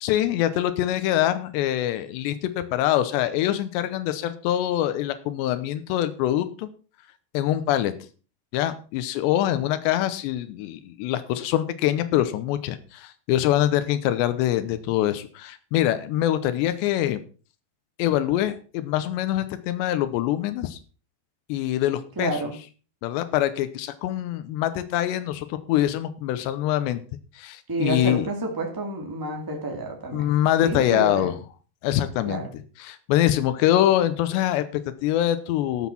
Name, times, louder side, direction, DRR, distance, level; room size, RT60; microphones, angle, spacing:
voice 1, 0.0-6.7 7.3-7.9 8.5-17.2 18.0-20.8 21.5-22.4 23.0-27.0 27.4-28.2 30.1-31.3 31.8-32.4 32.8-35.9, left 12 dB, 90° left, 11 dB, 3.0 m, -24 dB
voice 2, 22.1-22.5 27.7-30.3 30.6-31.3 32.2-32.5, right 2 dB, 10° right, 2 dB, 1.1 m, -29 dB
13.0 x 6.2 x 5.9 m, 0.37 s
omnidirectional pair, 5.0 m